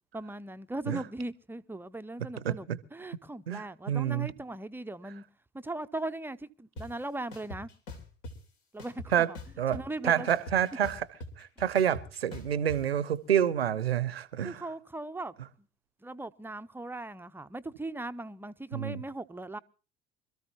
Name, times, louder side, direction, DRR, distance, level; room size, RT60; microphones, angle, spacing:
voice 1, 0.1-2.7 2.9-5.2 5.5-7.7 8.7-9.3 9.7-10.3 14.4-15.4 16.0-19.6, right 2 dB, 5° right, 0.6 m, -39 dB
voice 2, 2.4-2.8 3.5-4.3 9.1-9.3 9.6-11.0 11.4-14.6 18.7-19.0, right 9 dB, 80° right, 0.8 m, -28 dB
sound 1, 6.8-6.9 7.3-8.3 8.8-9.9 10.3-12.8, left 1 dB, 65° left, 2.8 m, -42 dB
25.5 x 13.5 x 2.9 m
figure-of-eight pair, 60°, 30 cm